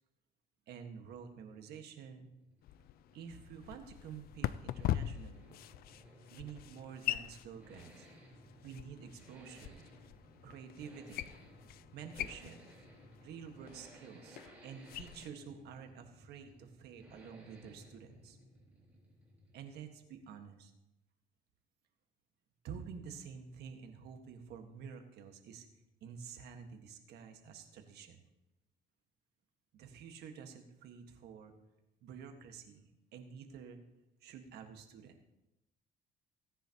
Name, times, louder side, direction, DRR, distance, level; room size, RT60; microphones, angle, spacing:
voice 1, 0.7-2.3 3.1-5.6 6.3-8.1 8.6-9.8 10.4-11.3 11.9-12.6 13.2-18.4 19.5-20.7 22.6-25.6 26.0-28.2 29.7-31.5 32.0-33.8 34.2-35.2, right 7 dB, 75° right, 5 dB, 1.6 m, -49 dB
sound 1, 2.2-20.1, right 1 dB, 10° right, 4.1 m, -59 dB
sound 2, 2.6-15.3, left 12 dB, 65° left, 0.4 m, -43 dB
17.5 x 10.0 x 3.0 m, 0.93 s
cardioid pair, 110°, 17 cm